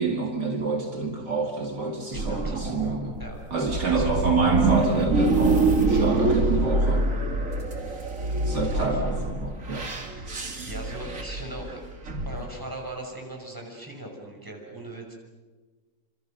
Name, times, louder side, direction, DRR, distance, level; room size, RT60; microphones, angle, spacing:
voice 1, 0.0-3.2 3.5-7.0 8.4-9.9, right 3 dB, 60° right, 2 dB, 2.7 m, -27 dB
voice 2, 2.1-2.7 3.2-3.4 3.9-4.1 8.7-9.0 10.1-11.8 12.2-15.1, right 1 dB, 10° right, 1 dB, 6.0 m, -39 dB
sound 1, 2.1-12.5, right 2 dB, 45° right, 2.9 m, -25 dB
29.5 x 26.0 x 6.7 m, 1.3 s
omnidirectional pair, 2.0 m